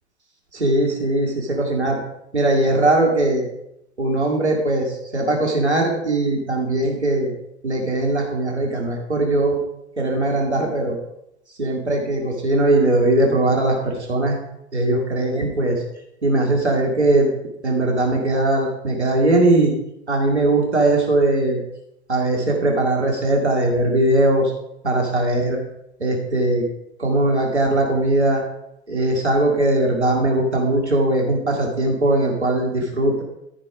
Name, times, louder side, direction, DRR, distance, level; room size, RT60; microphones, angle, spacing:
voice 1, 0.5-2.0 2.3-3.4 4.0-7.3 7.6-9.6 10.0-11.0 11.6-14.4 14.7-15.8 16.2-17.3 17.6-19.7 20.1-21.6 22.1-24.5 24.8-25.6 26.0-26.7 27.0-28.4 28.9-33.2, right 2 dB, 85° right, 0 dB, 2.2 m, -20 dB
14.0 x 5.5 x 4.9 m, 0.83 s
figure-of-eight pair, 90°, 33 cm